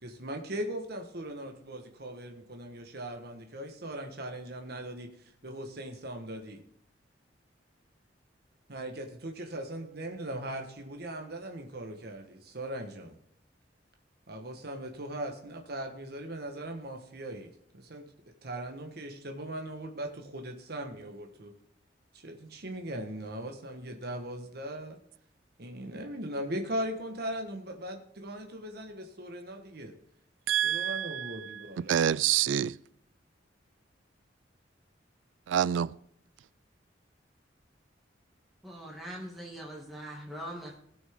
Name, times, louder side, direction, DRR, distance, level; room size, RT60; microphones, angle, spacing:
voice 1, 0.0-6.6 8.7-13.1 14.3-18.0 18.4-21.5 22.1-25.0 25.6-29.9 30.5-31.9, right 1 dB, 55° right, 1.2 m, -39 dB
voice 2, 30.5-31.6 31.9-32.8 35.5-35.9, right 10 dB, 90° right, 0.3 m, -27 dB
voice 3, 38.6-40.8, equal, ahead, 2.1 m, -42 dB
17.5 x 6.2 x 3.6 m
head